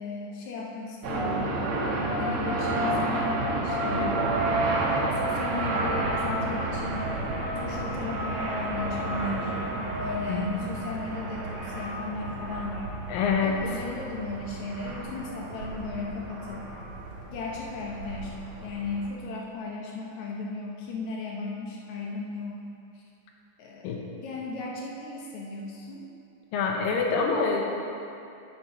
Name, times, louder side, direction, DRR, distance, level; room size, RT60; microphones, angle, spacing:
voice 1, 0.0-1.5 2.2-4.2 4.7-7.1 7.6-9.6 10.0-13.0 13.4-16.7 17.3-22.6 22.9-23.0 23.6-26.0, left 3 dB, 70° left, -2 dB, 1.9 m, -36 dB
sound 1, 1.0-19.1, right 2 dB, 70° right, 1.4 m, -30 dB
voice 2, 10.3-10.7 13.1-13.5 23.8-24.0 26.5-27.6, left 5 dB, 85° left, 1 dB, 2.7 m, -26 dB
8.5 x 6.3 x 5.6 m, 2.7 s
omnidirectional pair, 3.9 m